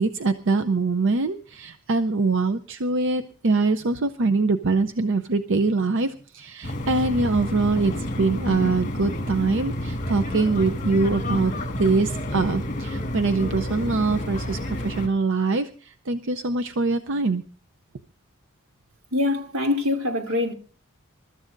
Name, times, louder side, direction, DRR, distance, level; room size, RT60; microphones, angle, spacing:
voice 1, 0.0-17.4, right 3 dB, 60° right, 0.6 m, -23 dB
sound 1, 6.6-15.1, left 1 dB, 40° left, 1.7 m, -29 dB
voice 2, 19.1-20.5, left 2 dB, 85° right, 2.7 m, -24 dB
27.5 x 13.5 x 2.6 m
head